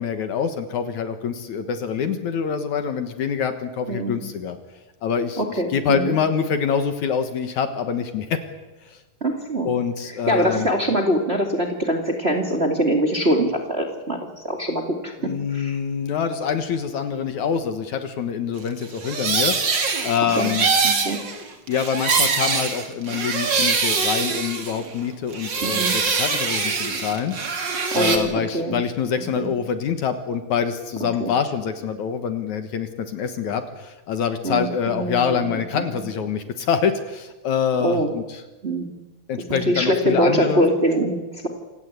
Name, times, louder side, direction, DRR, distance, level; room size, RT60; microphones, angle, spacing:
voice 1, 0.0-4.6 5.0-8.4 8.9-9.0 9.6-10.7 15.2-20.7 21.7-38.4 39.3-40.6, left 7 dB, 65° left, 8 dB, 2.6 m, -25 dB
voice 2, 5.4-6.1 9.2-9.7 10.3-15.8 20.4-20.5 20.8-21.2 25.6-26.0 27.9-28.8 29.4-29.5 31.2-31.3 34.4-36.0 37.8-38.1 38.6-38.9 39.5-41.5, right 1 dB, 20° right, 3 dB, 2.2 m, -23 dB
sound 1, 18.8-25.0 25.3-28.2, right 4 dB, 35° right, 2.5 m, -23 dB
27.5 x 17.0 x 8.3 m, 1.1 s
omnidirectional pair, 4.0 m